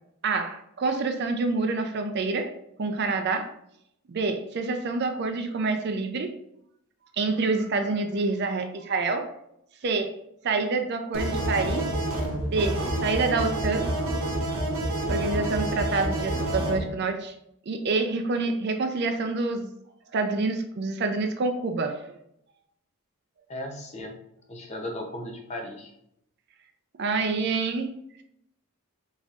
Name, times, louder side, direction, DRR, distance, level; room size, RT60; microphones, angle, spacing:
voice 1, 0.2-2.5 2.8-3.5 4.1-6.3 7.2-9.3 9.8-10.1 10.4-11.9 12.5-13.9 15.1-17.3 17.7-19.7 20.1-22.1 27.0-27.9, right 3 dB, 50° right, 6 dB, 0.4 m, -27 dB
sound 1, 11.1-16.8, right 1 dB, 80° right, 0.9 m, -28 dB
voice 2, 23.5-24.2 24.5-25.9, left 1 dB, 30° left, 2 dB, 0.6 m, -36 dB
4.1 x 3.6 x 2.4 m, 0.75 s
head